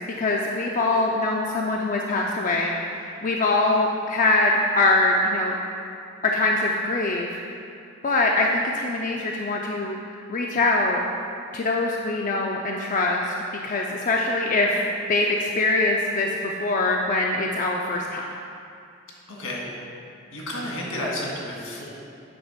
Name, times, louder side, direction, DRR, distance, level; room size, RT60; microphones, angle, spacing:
voice 1, 0.0-5.6 6.2-7.4 8.0-10.0 10.3-11.0 11.5-13.3 13.6-18.2, left 2 dB, 40° left, 0 dB, 0.4 m, -23 dB
voice 2, 19.3-19.6 20.3-21.9, left 1 dB, 75° left, -4 dB, 1.8 m, -31 dB
8.6 x 3.5 x 5.8 m, 2.5 s
head